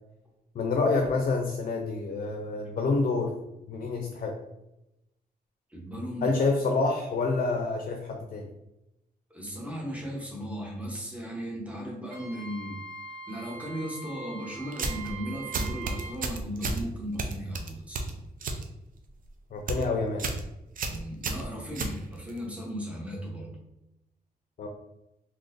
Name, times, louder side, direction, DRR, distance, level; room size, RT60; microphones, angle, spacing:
voice 1, 0.5-3.3 3.7-4.3 6.2-8.5 19.5-20.3 24.6-24.7, left 3 dB, 55° left, 2 dB, 0.5 m, -27 dB
voice 2, 5.7-6.4 9.3-12.8 13.3-18.2 20.9-23.5, equal, 10° right, -2 dB, 0.9 m, -36 dB
Wind instrument woodwind instrument, 12.1-16.2, right 4 dB, 90° right, 0.9 m, -42 dB
sound 1, 14.7-15.1 15.5-16.8 17.2-18.6 19.0-19.3 19.6-19.8 20.2-20.4 20.8-22.4, right 3 dB, 55° right, 0.5 m, -32 dB
3.8 x 2.8 x 2.6 m, 0.90 s
wide cardioid pair, 125°, 17 cm